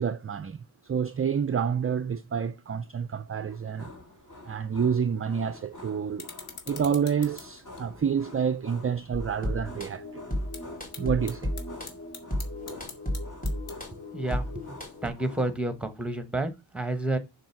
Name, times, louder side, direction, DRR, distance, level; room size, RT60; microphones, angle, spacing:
voice 1, 0.0-3.9 4.4-6.3 6.7-10.2 11.0-11.5, right 7 dB, 30° right, 0.4 m, -28 dB
sound 1, 3.5-15.6, left 2 dB, 35° left, 2.7 m, -48 dB
sound 2, 6.0-14.1, left 5 dB, 75° left, 2.3 m, -49 dB
sound 3, 9.1-15.1, equal, 15° left, 4.0 m, -34 dB
voice 2, 13.9-14.7 15.0-17.2, right 2 dB, ahead, 1.1 m, -30 dB
7.6 x 5.9 x 5.5 m
wide cardioid pair, 160°, 50 cm